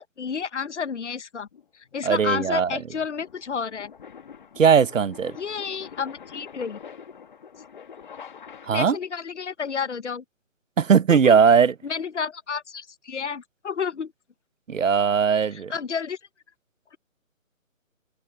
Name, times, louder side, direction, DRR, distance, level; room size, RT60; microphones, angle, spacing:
voice 1, 0.0-1.5 1.9-3.9 5.3-6.8 8.7-10.2 11.1-11.4 11.8-14.1 15.5-16.2, left 6 dB, 60° left, 1.2 m, -31 dB
sound 1, 1.5-9.1, left 7 dB, 35° left, 2.0 m, -45 dB
voice 2, 2.0-2.7 4.6-5.3 8.6-9.0 10.8-11.7 14.7-15.7, right 6 dB, 70° right, 0.9 m, -19 dB
hypercardioid pair, 170°, 40 cm